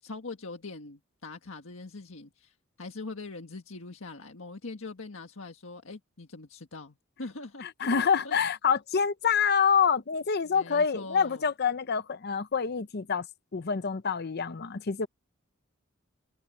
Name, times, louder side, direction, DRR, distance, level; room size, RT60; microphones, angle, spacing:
voice 1, 0.0-7.7 8.0-8.3 10.4-11.5, left 3 dB, 80° left, 1.6 m, -42 dB
voice 2, 7.6-13.3 13.5-15.1, left 6 dB, 50° left, 0.7 m, -26 dB
head